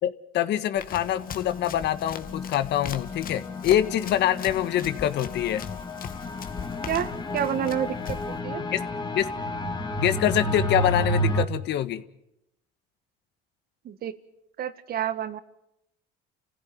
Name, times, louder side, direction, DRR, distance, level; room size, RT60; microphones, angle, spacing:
voice 1, 0.0-5.6 8.7-8.8 9.2-9.3 10.0-12.0, left 12 dB, 65° left, 12 dB, 1.7 m, -25 dB
Run, 0.8-8.4, left 7 dB, 50° left, 2.2 m, -40 dB
sound 1, 0.9-11.4, equal, 25° left, 2.7 m, -31 dB
voice 2, 6.9-8.6 13.9-14.2 14.6-15.4, right 10 dB, 50° right, 12 dB, 1.9 m, -29 dB
29.5 x 16.0 x 9.5 m, 0.84 s
supercardioid pair, 100°, 19 cm